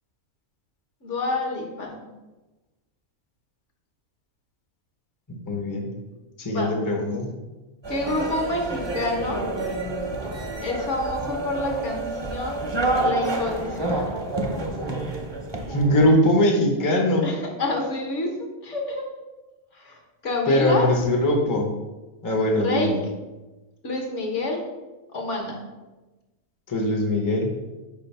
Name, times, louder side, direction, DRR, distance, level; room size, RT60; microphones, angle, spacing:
voice 1, 1.0-2.0 6.5-6.7 7.9-9.4 10.6-12.6 13.0-14.1 17.2-18.3 18.6-19.1 19.7-20.9 22.6-22.9 23.8-24.6 25.1-25.6, left 2 dB, 60° left, 1 dB, 1.4 m, -28 dB
voice 2, 5.3-5.9 6.4-7.3 15.7-17.3 20.5-21.7 22.2-23.0 26.7-27.5, left 1 dB, 20° left, 1 dB, 0.6 m, -21 dB
sound 1, 7.8-16.1, right 2 dB, 25° right, 0.6 m, -28 dB
5.2 x 3.7 x 5.4 m, 1.1 s
omnidirectional pair, 1.4 m